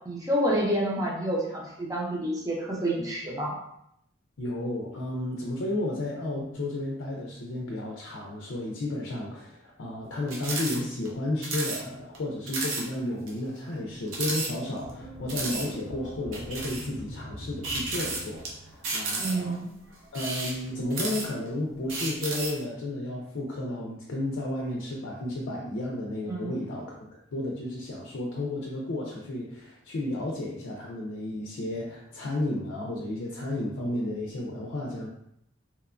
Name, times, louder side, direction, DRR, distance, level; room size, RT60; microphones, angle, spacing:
voice 1, 0.1-3.5 19.1-19.7 26.3-26.6, right 1 dB, 20° right, -3 dB, 0.6 m, -28 dB
voice 2, 4.4-19.6 20.1-27.0 27.3-35.1, left 1 dB, 85° left, -2 dB, 0.4 m, -32 dB
sound 1, 10.3-10.8 11.0-11.1 11.4-11.8 12.1-12.2 12.5-12.8 13.3-13.4 14.1-14.9 15.3-15.7 16.3-16.9 17.6-18.5 18.8-19.5 20.1-21.5 21.9-22.6, right 3 dB, 90° right, 0.6 m, -32 dB
sound 2, 14.8-19.1, right 1 dB, 45° right, 1.2 m, -43 dB
2.9 x 2.2 x 2.4 m, 0.76 s
head